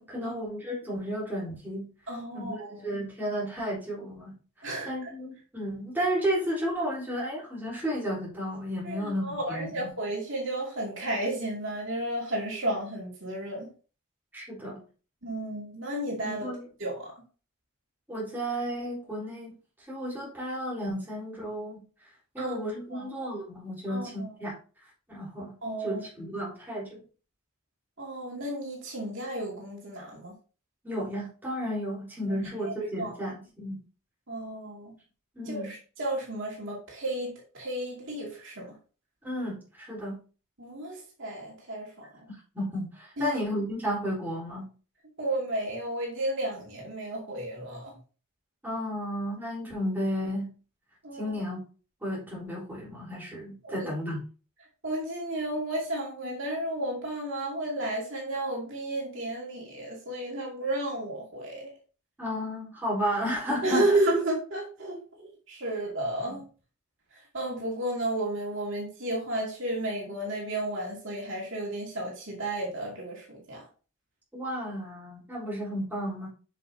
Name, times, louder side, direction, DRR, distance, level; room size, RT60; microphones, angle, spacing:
voice 1, 0.0-1.9 2.3-4.3 4.8-9.9 14.3-14.8 16.2-16.6 18.1-19.6 19.9-21.8 22.3-24.5 25.1-25.5 25.8-27.0 30.8-33.8 35.3-35.7 39.2-40.2 42.5-44.7 48.6-50.5 51.1-51.6 52.0-54.3 62.2-64.0 66.3-66.4 74.3-76.3, equal, 10° right, -7 dB, 3.8 m, -33 dB
voice 2, 2.1-3.0 4.6-4.9 8.8-13.7 15.2-16.5 16.8-17.1 22.4-22.6 22.9-23.1 23.9-24.3 25.6-26.0 28.0-30.3 32.3-32.4 32.6-33.1 34.3-34.9 35.5-38.7 40.6-42.1 43.2-43.4 45.2-48.0 51.0-51.4 53.6-53.9 54.8-61.7 63.6-66.4 67.3-73.6, right 1 dB, 65° right, -2 dB, 2.4 m, -32 dB
7.4 x 6.2 x 2.8 m, 0.36 s
head